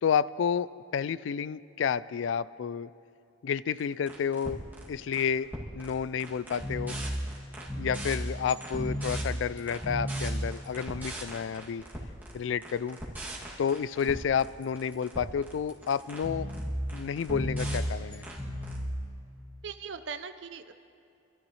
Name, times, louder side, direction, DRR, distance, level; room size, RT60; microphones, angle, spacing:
voice 1, 0.0-2.9 3.4-4.6 4.9-5.5 5.7-7.0 7.8-11.8 12.3-13.0 13.6-16.5 16.9-18.2, left 7 dB, 80° left, 18 dB, 0.3 m, -30 dB
sound 1, 3.8-3.9 4.1-5.3 5.5-5.9 6.2-19.0, equal, 10° right, 2.3 m, -34 dB
voice 2, 19.6-20.7, right 6 dB, 70° right, 9 dB, 0.6 m, -40 dB
26.5 x 13.0 x 3.2 m, 2.5 s
head